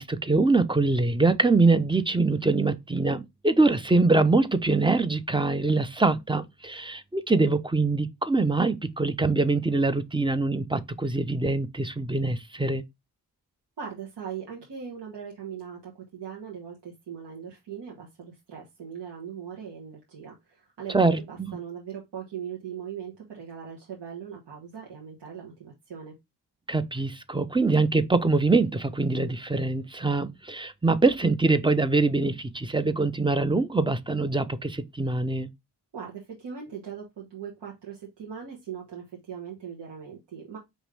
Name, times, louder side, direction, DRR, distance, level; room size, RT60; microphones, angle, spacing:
voice 1, 0.0-12.8 20.9-21.6 26.7-35.5, right 3 dB, 10° right, 0.7 m, -24 dB
voice 2, 13.8-26.2 35.9-40.6, right 7 dB, 80° right, 1.4 m, -40 dB
5.0 x 3.1 x 3.2 m
cardioid pair, 50°, 41 cm